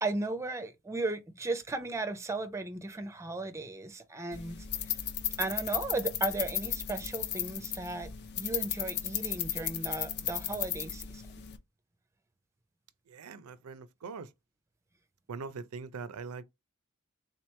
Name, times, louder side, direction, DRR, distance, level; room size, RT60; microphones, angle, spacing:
voice 1, 0.0-5.0 5.4-8.1 8.4-11.2, right 2 dB, 15° right, 0.5 m, -36 dB
sound 1, 4.3-11.6, left 10 dB, 50° left, 0.5 m, -35 dB
voice 2, 13.1-14.3 15.3-16.4, right 5 dB, 85° right, 0.5 m, -42 dB
3.8 x 2.9 x 3.2 m
head